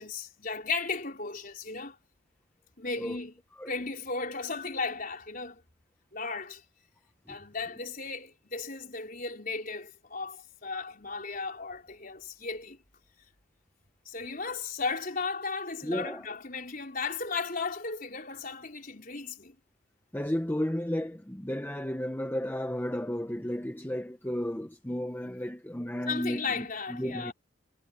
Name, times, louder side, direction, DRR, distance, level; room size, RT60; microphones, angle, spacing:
voice 1, 0.0-2.0 2.8-3.3 3.7-5.6 6.1-6.6 7.3-12.8 14.1-19.6 26.1-27.3, left 4 dB, 40° left, 4.6 m, -35 dB
voice 2, 15.8-16.3 20.1-27.3, equal, 10° left, 0.8 m, -33 dB
head